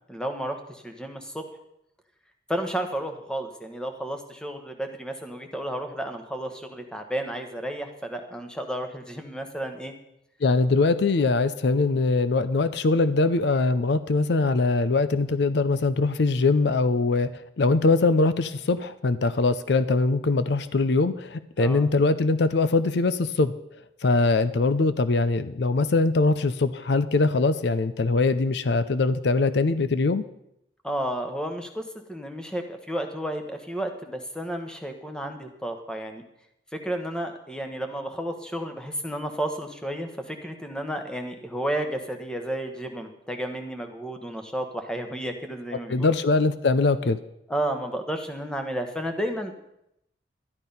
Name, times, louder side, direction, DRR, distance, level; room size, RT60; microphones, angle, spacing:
voice 1, 0.1-1.5 2.5-9.9 21.6-21.9 30.8-36.2 36.7-46.1 47.5-49.6, right 1 dB, 5° left, 5 dB, 1.1 m, -32 dB
voice 2, 10.4-17.3 17.6-23.5 24.0-30.2 45.9-47.2, left 3 dB, 65° left, 13 dB, 0.5 m, -22 dB
12.0 x 11.0 x 5.5 m, 0.80 s
head